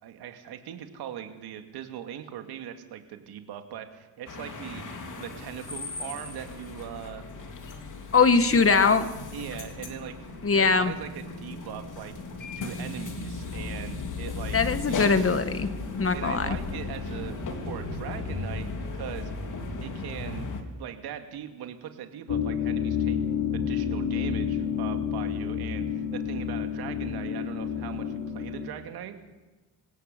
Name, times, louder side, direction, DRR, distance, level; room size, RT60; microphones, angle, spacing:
voice 1, 0.0-4.8 5.2-7.2 8.1-9.0 9.3-10.2 10.5-12.1 12.6-14.6 14.8-15.0 16.1-19.3 19.8-20.4 20.7-23.2 23.5-29.2, right 10 dB, 90° right, 6 dB, 2.4 m, -40 dB
sound 1, 4.3-20.6, left 3 dB, 55° left, 3.5 m, -36 dB
voice 2, 8.1-9.1 10.4-10.9 14.5-15.7 16.0-16.6, left 5 dB, 35° left, 11 dB, 1.8 m, -21 dB
sound 2, 22.3-28.7, left 7 dB, 85° left, 4.1 m, -29 dB
26.5 x 17.5 x 6.9 m, 1.2 s
cardioid pair, 85°, 37 cm